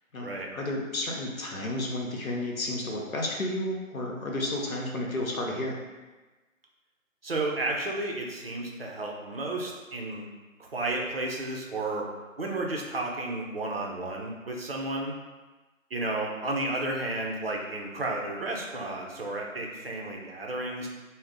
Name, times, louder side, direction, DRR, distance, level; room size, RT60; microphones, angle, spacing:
voice 1, 0.1-5.8, left 1 dB, 85° left, -1 dB, 0.8 m, -32 dB
voice 2, 7.2-10.3 10.6-12.1 12.4-15.2 15.9-20.9, right 2 dB, 50° right, -1 dB, 0.4 m, -32 dB
2.5 x 2.0 x 3.7 m, 1.2 s
figure-of-eight pair, 150°, 40 cm